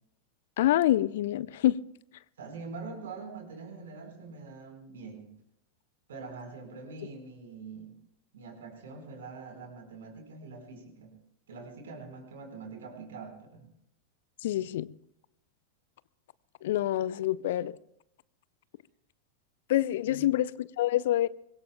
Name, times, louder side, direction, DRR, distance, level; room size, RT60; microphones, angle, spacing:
voice 1, 0.6-1.8 14.4-14.9 16.6-17.7 19.7-21.3, left 13 dB, 55° left, 0.5 m, -26 dB
voice 2, 2.4-5.3 6.1-7.9 8.3-11.1 11.5-13.7 20.0-20.2, right 4 dB, 60° right, 4.6 m, -44 dB
24.5 x 21.5 x 2.2 m
figure-of-eight pair, 90°, 0 cm